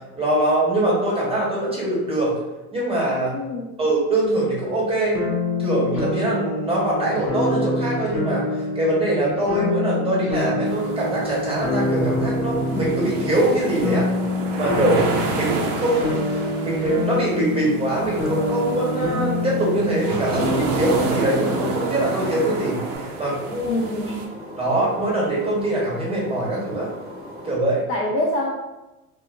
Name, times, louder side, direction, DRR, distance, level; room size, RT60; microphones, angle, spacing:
voice 1, 0.1-2.3 2.7-3.3 3.8-5.2 5.6-14.1 14.5-24.1 24.6-26.9 27.4-27.8, right 1 dB, 10° right, -4 dB, 1.2 m, -23 dB
voice 2, 3.3-3.8 23.7-24.2 27.9-28.5, left 1 dB, 30° left, -3 dB, 0.5 m, -25 dB
sound 1, 5.1-23.0, left 2 dB, 90° left, 0.9 m, -27 dB
sound 2, 10.7-24.2, right 3 dB, 45° right, 0.6 m, -30 dB
sound 3, 20.4-27.6, equal, 30° right, 0.9 m, -39 dB
2.7 x 2.4 x 2.5 m, 1.0 s
hypercardioid pair, 75°, 45 cm